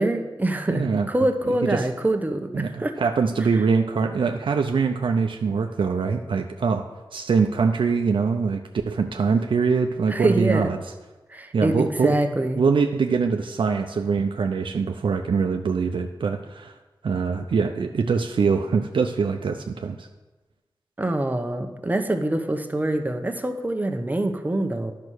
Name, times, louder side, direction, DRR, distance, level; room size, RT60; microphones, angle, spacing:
voice 1, 0.0-3.0 10.1-10.7 11.3-12.6 21.0-24.9, right 1 dB, 20° right, 6 dB, 0.9 m, -25 dB
voice 2, 0.7-1.1 1.7-1.8 2.5-8.6 8.9-10.8 11.5-12.2 12.6-16.7 17.0-20.1, right 5 dB, 75° right, 5 dB, 0.6 m, -23 dB
10.5 x 5.6 x 6.3 m, 1.1 s
wide cardioid pair, 85°, 9 cm